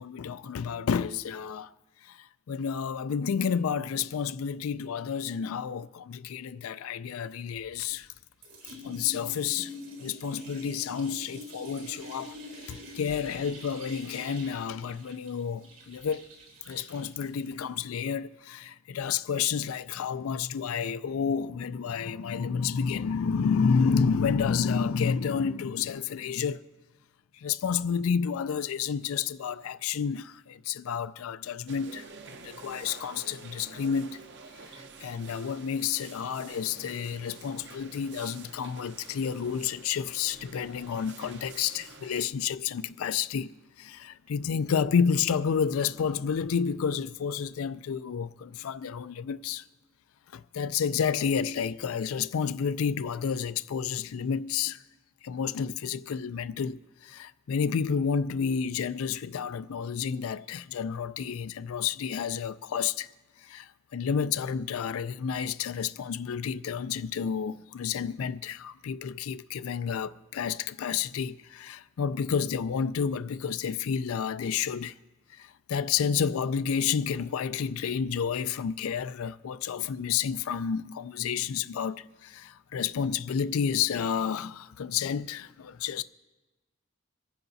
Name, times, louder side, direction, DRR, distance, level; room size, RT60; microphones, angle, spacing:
voice 1, 0.0-1.7 2.0-8.1 8.8-9.7 10.0-12.3 12.6-16.3 16.7-26.6 27.4-34.2 35.0-49.6 50.3-54.8 55.2-63.1 63.4-74.9 75.3-86.0, left 6 dB, 90° left, 0.4 m, -30 dB
sound 1, 7.6-8.2 8.4-17.8, left 1 dB, 85° right, 4.4 m, -46 dB
sound 2, 31.7-42.2, right 4 dB, 60° right, 0.8 m, -48 dB
27.0 x 10.5 x 2.7 m
head